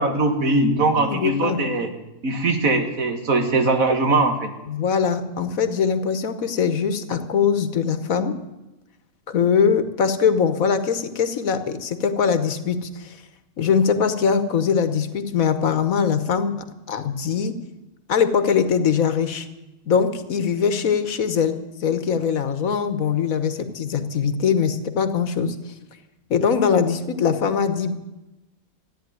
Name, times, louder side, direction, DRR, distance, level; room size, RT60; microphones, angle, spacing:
voice 1, 0.0-1.9 2.2-4.5, right 2 dB, 65° right, 5 dB, 2.2 m, -21 dB
voice 2, 1.0-1.7 4.7-8.4 9.3-13.2 13.6-16.5 16.9-17.5 18.1-19.5 19.9-25.5 26.3-27.9, left 6 dB, 65° left, 10 dB, 1.5 m, -22 dB
14.0 x 9.8 x 9.4 m, 1.0 s
omnidirectional pair, 1.6 m